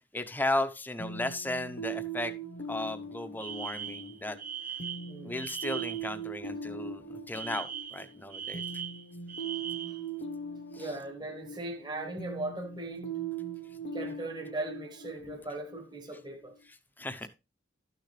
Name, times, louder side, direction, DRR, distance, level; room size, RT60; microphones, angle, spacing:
voice 1, 0.1-2.3 2.7-4.4 4.7-4.8 5.2-8.8 10.7-10.9 16.7-17.3, left 1 dB, 10° left, 0.8 m, -35 dB
sound 1, 1.0-16.6, right 4 dB, 65° left, 1.3 m, -41 dB
Alarm, 3.4-6.1 7.3-10.1, right 8 dB, 45° right, 1.2 m, -40 dB
voice 2, 10.8-13.2 13.9-16.5, right 2 dB, 25° right, 1.2 m, -39 dB
12.5 x 6.6 x 3.3 m
head